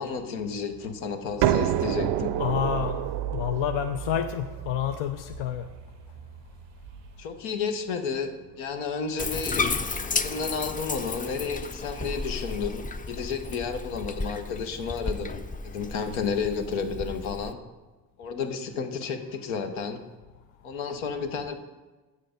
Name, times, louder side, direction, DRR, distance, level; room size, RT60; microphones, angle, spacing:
voice 1, 0.0-2.3 7.2-9.7 10.1-17.6 18.2-20.0 20.6-21.5, left 5 dB, 85° left, 5 dB, 1.0 m, -32 dB
sound 1, 1.4-7.0, right 12 dB, 65° right, 0.5 m, -29 dB
voice 2, 2.4-3.0 3.3-5.7, left 10 dB, 70° left, 7 dB, 0.6 m, -28 dB
Bathtub (filling or washing), 9.2-17.5, left 3 dB, 20° left, 0.5 m, -33 dB
8.2 x 6.7 x 5.0 m, 1.2 s
supercardioid pair, 55°, 46 cm